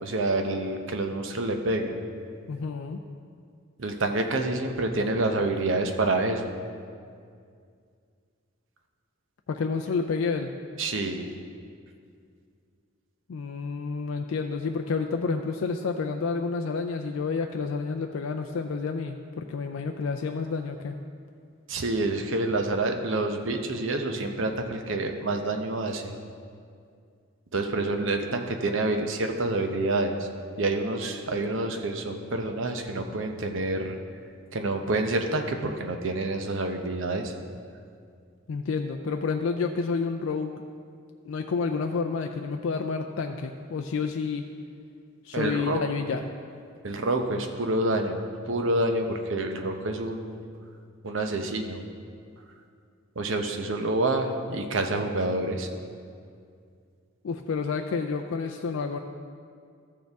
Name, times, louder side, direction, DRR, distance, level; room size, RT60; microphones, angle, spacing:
voice 1, 0.0-2.0 3.8-6.5 10.8-11.3 21.7-26.1 27.5-30.3 30.6-34.0 34.5-37.3 45.3-45.9 46.8-48.2 48.5-50.4 51.0-51.8 53.2-55.7, right 2 dB, 60° right, 4 dB, 0.7 m, -27 dB
voice 2, 2.5-3.0 9.5-10.5 13.3-20.9 38.5-40.5 41.2-44.4 45.2-46.3 57.2-59.0, left 4 dB, 70° left, 4 dB, 0.4 m, -29 dB
13.5 x 6.5 x 3.5 m, 2.2 s
head